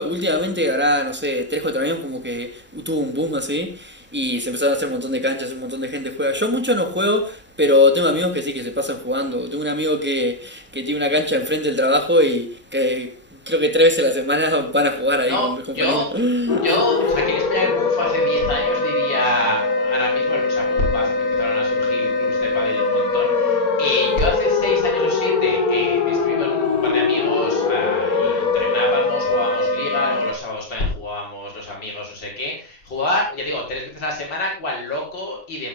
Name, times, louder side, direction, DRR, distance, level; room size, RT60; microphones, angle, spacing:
voice 1, 0.0-16.6, left 1 dB, 5° right, 2.5 m, -21 dB
voice 2, 15.7-16.1 16.5-35.7, left 1 dB, 70° left, 6.5 m, -27 dB
sound 1, 16.5-30.3, left 3 dB, 50° left, 2.3 m, -21 dB
17.5 x 10.5 x 4.1 m
omnidirectional pair, 2.1 m